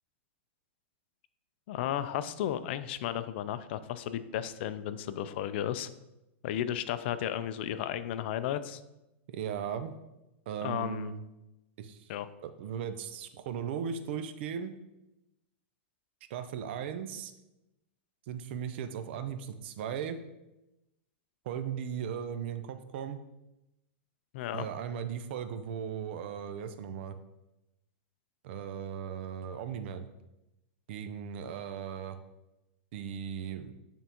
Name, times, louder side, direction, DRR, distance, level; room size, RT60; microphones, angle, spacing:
voice 1, 1.7-5.9 6.4-8.8 10.6-11.1 12.1-12.3 24.3-24.7, left 11 dB, 55° left, 12 dB, 0.4 m, -34 dB
voice 2, 9.3-9.9 10.5-11.2 11.8-12.1 12.4-14.7 16.3-17.3 18.3-20.2 21.5-23.2 24.5-27.2 28.4-30.1 30.9-32.2 32.9-33.7, right 8 dB, 60° right, 10 dB, 0.5 m, -37 dB
9.0 x 3.6 x 2.9 m, 0.95 s
hypercardioid pair, 135°, 7 cm